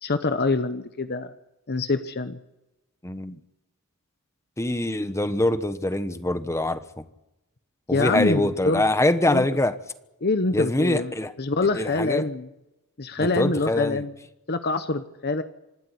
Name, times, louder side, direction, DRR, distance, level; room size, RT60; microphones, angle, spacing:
voice 1, 0.0-1.3 1.7-2.4 7.9-8.8 9.3-9.5 10.2-11.1 11.4-12.5 13.0-14.1 14.5-15.4, left 3 dB, 50° left, 10 dB, 1.0 m, -25 dB
voice 2, 3.0-3.4 4.6-7.0 7.9-9.7 10.5-11.3 11.7-12.3 13.2-14.0, left 1 dB, 15° left, 11 dB, 1.1 m, -24 dB
25.5 x 12.0 x 9.9 m, 0.93 s
head